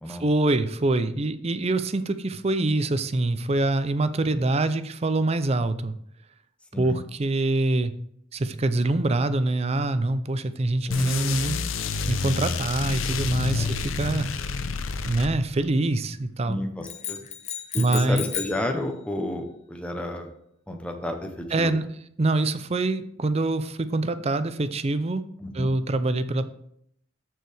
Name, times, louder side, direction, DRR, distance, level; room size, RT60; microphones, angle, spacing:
voice 1, 0.1-5.9 6.8-7.9 8.3-11.6 12.1-14.3 15.0-16.6 17.8-18.2 21.5-21.9 22.2-25.2 25.5-26.5, right 2 dB, 30° right, 12 dB, 0.5 m, -25 dB
sound 1, 10.9-15.7, left 4 dB, 90° left, 0.6 m, -28 dB
voice 2, 16.5-17.2 17.7-20.3 20.7-21.7 25.4-25.7, left 1 dB, 5° left, 3 dB, 0.9 m, -31 dB
sound 2, 16.8-18.7, left 9 dB, 35° left, 0.8 m, -34 dB
14.0 x 4.7 x 3.4 m, 0.72 s
head